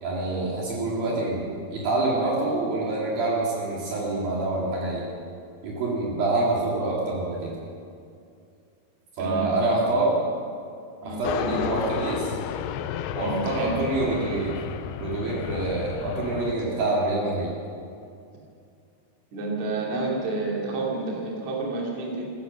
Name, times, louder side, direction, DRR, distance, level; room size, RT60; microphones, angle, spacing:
voice 1, 0.0-5.1 5.6-7.5 9.2-10.1 11.0-12.4 13.1-14.6 15.0-17.5, right 2 dB, 60° right, -4 dB, 3.8 m, -26 dB
voice 2, 9.2-9.8 11.0-11.7 13.2-13.8 19.3-22.2, right 2 dB, 45° right, -3 dB, 3.6 m, -30 dB
sound 1, 11.2-16.5, left 10 dB, 85° left, 2.1 m, -32 dB
15.0 x 14.5 x 6.4 m, 2.4 s
omnidirectional pair, 4.8 m